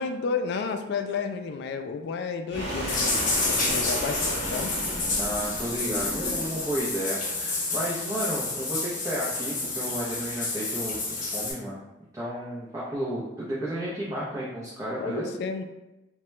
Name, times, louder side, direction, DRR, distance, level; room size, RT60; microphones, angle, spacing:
voice 1, 0.0-4.7 15.0-15.6, left 5 dB, 65° left, 7 dB, 0.3 m, -31 dB
sound 1, 2.5-6.8, right 1 dB, 75° right, 0.9 m, -34 dB
sound 2, 2.9-11.5, left 3 dB, 45° left, 0.7 m, -29 dB
voice 2, 5.1-11.8 12.1-15.3, equal, 20° right, -9 dB, 0.6 m, -32 dB
2.8 x 2.2 x 3.1 m, 0.99 s
head